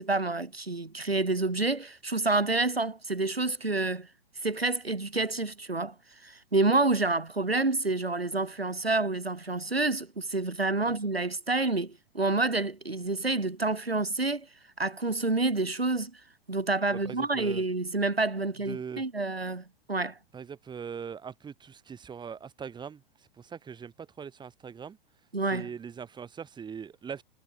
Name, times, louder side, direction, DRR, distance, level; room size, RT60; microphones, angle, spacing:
voice 1, 0.0-4.1 4.4-5.9 6.2-14.5 14.8-16.2 16.5-20.2 25.3-25.7, right 3 dB, 85° right, 6.1 m, -28 dB
voice 2, 16.9-17.6 18.7-19.0 20.3-23.0 23.4-25.0 25.5-27.2, right 7 dB, 15° right, 7.1 m, -41 dB
figure-of-eight pair, 105°, 30 cm